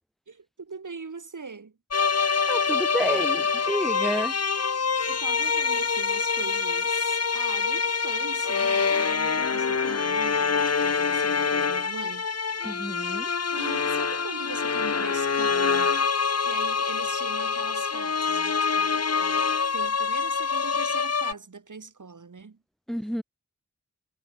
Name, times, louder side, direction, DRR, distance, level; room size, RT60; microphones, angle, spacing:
voice 1, 0.3-1.7 5.0-12.3 13.5-22.6, right 4 dB, 75° right, 4.0 m, -41 dB
sound 1, 1.9-21.3, left 5 dB, 55° left, 1.0 m, -25 dB
voice 2, 2.5-4.4 12.6-13.3 22.9-23.2, equal, ahead, 4.9 m, -30 dB
cardioid pair, 40°, 31 cm